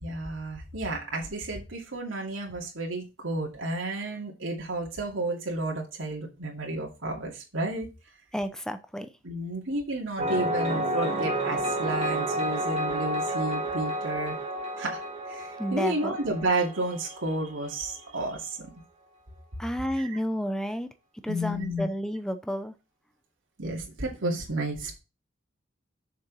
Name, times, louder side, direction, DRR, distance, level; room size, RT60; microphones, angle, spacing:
voice 1, 0.0-7.9 9.2-14.4 14.8-15.0 15.3-18.7 20.0-20.2 21.3-21.9 23.6-25.0, right 2 dB, 80° right, 2.5 m, -31 dB
voice 2, 8.3-9.1 15.6-16.2 19.6-20.9 21.2-22.7, equal, 5° left, 0.7 m, -31 dB
sound 1, 10.2-17.7, right 1 dB, 35° right, 1.9 m, -30 dB
7.0 x 6.4 x 4.1 m
head